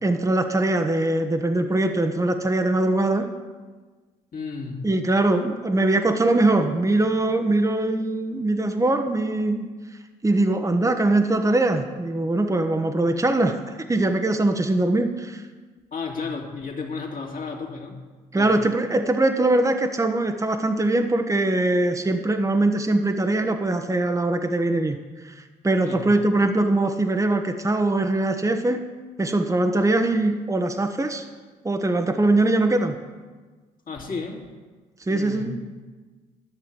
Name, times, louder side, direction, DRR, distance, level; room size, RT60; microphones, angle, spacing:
voice 1, 0.0-3.3 4.8-9.7 10.2-13.6 13.9-15.4 18.3-25.0 25.2-28.8 29.2-31.2 31.6-33.0 35.1-35.6, right 2 dB, 15° right, 6 dB, 1.1 m, -22 dB
voice 2, 4.3-4.8 15.9-18.0 18.4-18.6 25.8-26.1 33.9-34.5 35.1-35.5, left 4 dB, 45° left, 0 dB, 2.6 m, -33 dB
12.0 x 6.5 x 7.6 m, 1.4 s
hypercardioid pair, 45°, 19 cm